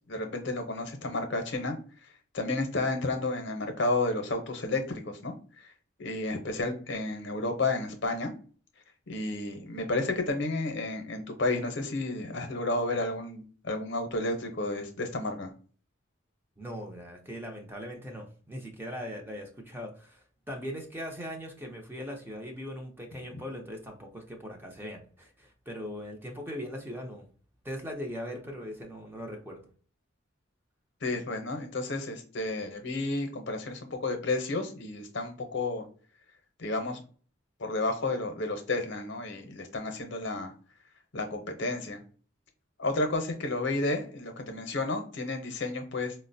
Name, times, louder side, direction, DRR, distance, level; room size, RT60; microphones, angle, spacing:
voice 1, 0.1-1.8 2.3-5.3 6.0-8.3 9.1-15.5 31.0-35.9 36.6-37.0 37.6-40.5 41.1-42.0 42.8-46.1, left 2 dB, 60° left, 5 dB, 0.7 m, -31 dB
voice 2, 16.6-27.3 27.6-29.6, equal, 10° right, 1 dB, 0.5 m, -40 dB
4.5 x 2.0 x 2.6 m, 0.41 s
head